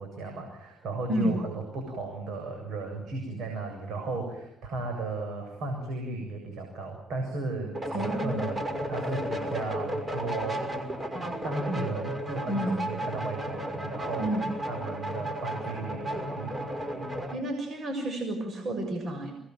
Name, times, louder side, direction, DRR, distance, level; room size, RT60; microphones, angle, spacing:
voice 1, 0.0-10.7 11.2-14.3 14.7-16.5, right 3 dB, 75° right, 3 dB, 7.4 m, -35 dB
sound 1, 7.7-17.4, right 1 dB, 25° right, 6.0 m, -34 dB
voice 2, 7.9-8.4 12.5-12.8 14.2-14.4 17.3-19.3, right 1 dB, 50° right, 5 dB, 6.9 m, -30 dB
26.5 x 20.5 x 9.3 m, 0.74 s
cardioid pair, 90°, 0 cm